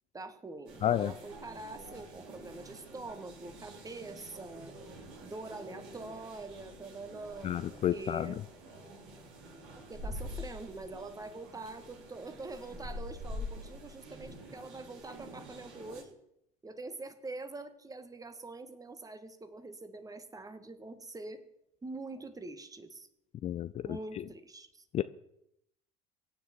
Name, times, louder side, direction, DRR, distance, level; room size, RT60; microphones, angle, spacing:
voice 1, 0.1-4.8 5.2-8.4 9.7-16.2 16.6-21.5 21.8-23.1 23.8-24.9, right 2 dB, 15° right, 10 dB, 1.8 m, -44 dB
Walking around and out of busy exhibition in Tate Britain, 0.7-16.0, left 1 dB, 60° right, 4.3 m, -47 dB
voice 2, 0.8-1.1 7.4-8.4 23.4-23.8 24.9-25.0, left 11 dB, 35° left, 14 dB, 0.5 m, -30 dB
23.5 x 9.7 x 4.6 m, 0.78 s
figure-of-eight pair, 60°, 20 cm